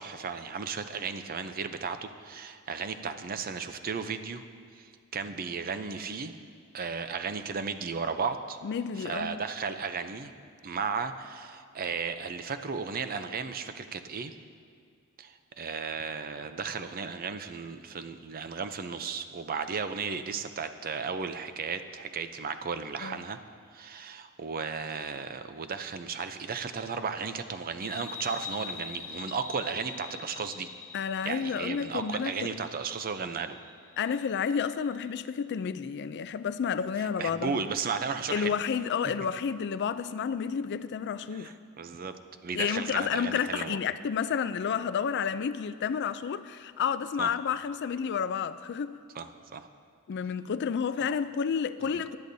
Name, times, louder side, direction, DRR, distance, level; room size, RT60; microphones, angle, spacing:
voice 1, 0.0-4.4 4.7-6.4 6.7-8.6 9.0-10.3 10.6-14.3 15.2-23.4 23.7-30.7 31.2-33.6 37.0-38.6 41.3-42.2 42.4-43.8 47.2-47.3 49.1-49.7 51.9-52.0, right 5 dB, 45° right, 0.6 m, -35 dB
voice 2, 8.6-9.4 23.0-23.2 30.9-32.5 34.0-37.6 38.3-41.5 42.5-49.0 50.1-52.2, left 7 dB, 55° left, 0.4 m, -30 dB
sound 1, 27.8-35.0, left 5 dB, 15° left, 2.2 m, -44 dB
18.5 x 11.5 x 2.7 m
head